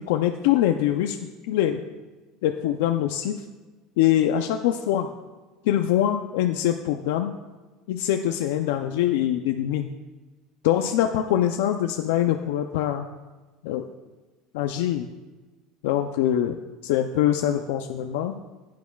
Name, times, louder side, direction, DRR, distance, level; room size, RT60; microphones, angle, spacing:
voice 1, 0.0-1.8 2.4-3.4 4.0-5.1 5.6-7.3 7.9-9.9 10.6-13.1 13.6-13.9 14.5-15.1 15.8-18.4, left 11 dB, 80° left, 5 dB, 0.5 m, -24 dB
15.0 x 9.3 x 2.3 m, 1.2 s
cardioid pair, 175°, 0 cm